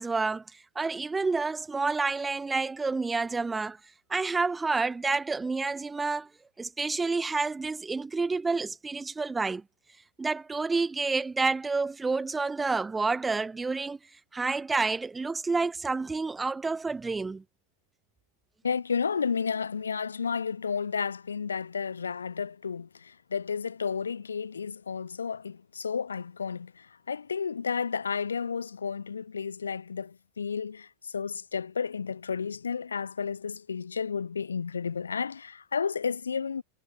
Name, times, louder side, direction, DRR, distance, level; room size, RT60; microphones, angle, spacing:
voice 1, 0.0-3.8 4.1-6.3 6.6-9.6 10.2-14.0 14.3-17.4, right 4 dB, 10° right, 0.3 m, -29 dB
voice 2, 18.6-36.6, left 6 dB, 70° left, 1.2 m, -32 dB
figure-of-eight pair, 90°, 0 cm